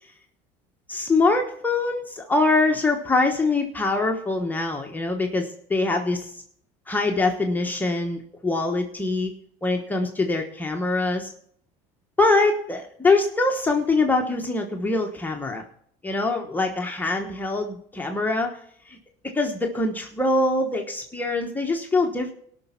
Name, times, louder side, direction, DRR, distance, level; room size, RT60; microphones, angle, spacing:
voice 1, 0.9-6.4 6.9-9.3 9.6-11.3 12.2-15.6 16.0-18.6 18.9-19.0 19.3-22.3, left 3 dB, 10° left, 1 dB, 1.1 m, -23 dB
18.0 x 6.1 x 5.7 m, 0.65 s
supercardioid pair, 125°, 15 cm